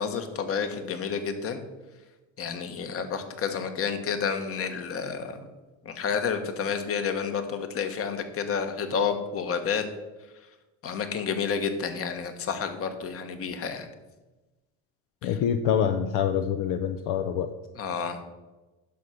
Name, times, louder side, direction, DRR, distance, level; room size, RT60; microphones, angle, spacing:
voice 1, 0.0-1.6 2.4-5.5 5.8-9.8 10.8-13.9 17.8-18.2, left 6 dB, 45° left, 8 dB, 1.4 m, -30 dB
voice 2, 15.2-17.5, left 8 dB, 70° left, 8 dB, 0.7 m, -26 dB
10.5 x 6.4 x 5.8 m, 1.1 s
cardioid pair, 120°, 33 cm